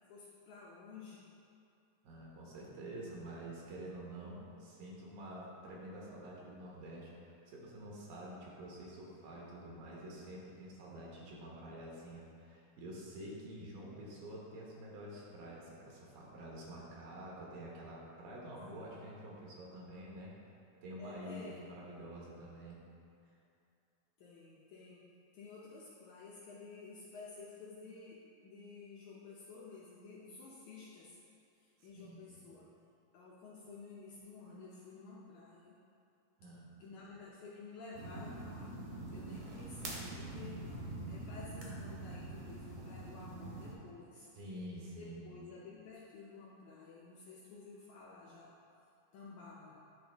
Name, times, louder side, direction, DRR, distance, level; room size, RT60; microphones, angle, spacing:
voice 1, 0.1-1.2 18.7-19.0 21.0-21.6 24.2-25.0 25.3-31.2 31.6-32.7 33.1-35.8 36.8-38.8 39.1-44.3 44.9-48.5 49.1-49.8, left 4 dB, 75° left, -6 dB, 1.7 m, -52 dB
voice 2, 2.0-20.4 20.8-22.8 31.8-32.4 36.4-36.7 44.2-45.4, right 1 dB, 80° right, -4 dB, 2.9 m, -48 dB
sound 1, 37.9-43.7, right 2 dB, 60° right, 2.0 m, -44 dB
10.5 x 4.0 x 3.4 m, 2.6 s
omnidirectional pair, 4.1 m